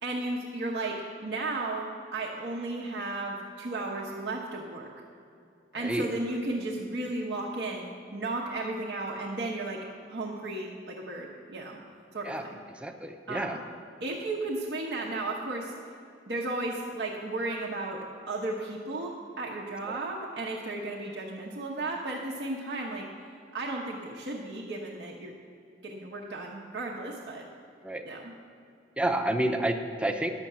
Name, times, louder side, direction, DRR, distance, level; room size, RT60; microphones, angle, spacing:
voice 1, 0.0-4.9 5.7-11.8 12.1-12.6 13.3-13.6 14.0-15.7 16.3-18.0 18.3-23.1 23.5-25.4 25.8-27.5 28.0-28.3, right 2 dB, 70° right, -3 dB, 1.0 m, -34 dB
voice 2, 5.7-6.1 12.2-13.6 19.9-20.0 27.8-28.0 29.0-30.3, right 1 dB, 5° right, 5 dB, 0.6 m, -30 dB
10.5 x 6.8 x 7.4 m, 2.5 s
head